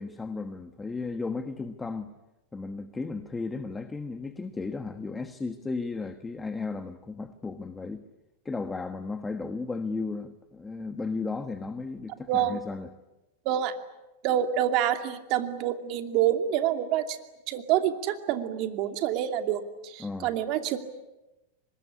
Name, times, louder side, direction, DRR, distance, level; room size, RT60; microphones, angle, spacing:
voice 1, 0.0-2.1 2.5-8.1 8.4-12.9 20.0-20.3, left 3 dB, 10° left, 9 dB, 1.3 m, -34 dB
voice 2, 12.3-12.6 13.4-13.7 14.2-17.2 17.5-20.8, right 11 dB, 45° right, 6 dB, 2.6 m, -27 dB
25.0 x 21.5 x 10.0 m, 1.0 s
supercardioid pair, 140°, 0 cm